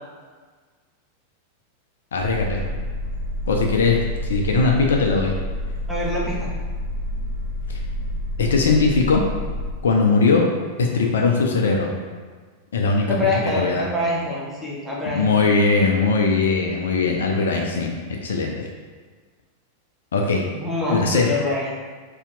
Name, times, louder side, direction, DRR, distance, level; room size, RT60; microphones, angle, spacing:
voice 1, 2.1-2.6 3.5-5.3 7.7-7.8 8.4-9.3 9.8-10.5 10.8-11.9 12.7-13.2 13.5-13.9 15.1-18.7 20.1-20.4 20.9-21.3, left 4 dB, 65° left, 1 dB, 0.3 m, -20 dB
sound 1, 2.2-9.7, left 1 dB, 40° right, 1.4 m, -28 dB
voice 2, 5.9-6.5 13.1-15.3 20.5-21.7, left 2 dB, 5° right, -6 dB, 0.8 m, -25 dB
2.7 x 2.1 x 3.7 m, 1.5 s
figure-of-eight pair, 90°, 0 cm